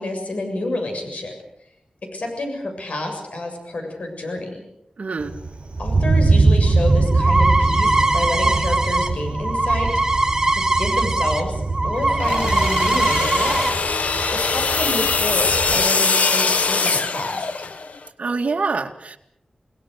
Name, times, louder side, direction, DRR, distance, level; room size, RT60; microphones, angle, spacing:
voice 1, 0.0-1.3 2.1-4.6 5.8-13.8 14.3-17.5, left 2 dB, 70° left, 3 dB, 7.2 m, -29 dB
voice 2, 5.0-5.3 18.2-19.2, right 4 dB, 70° right, 4 dB, 2.4 m, -25 dB
Thunder, 5.2-15.8, right 3 dB, 45° right, 5.9 m, -22 dB
sound 1, 6.6-11.4 11.7-13.7, right 2 dB, 25° right, 3.2 m, -21 dB
sound 2, 12.1-18.0, left 4 dB, 90° left, 1.5 m, -22 dB
29.0 x 19.5 x 6.8 m, 0.79 s
wide cardioid pair, 95°, 2 cm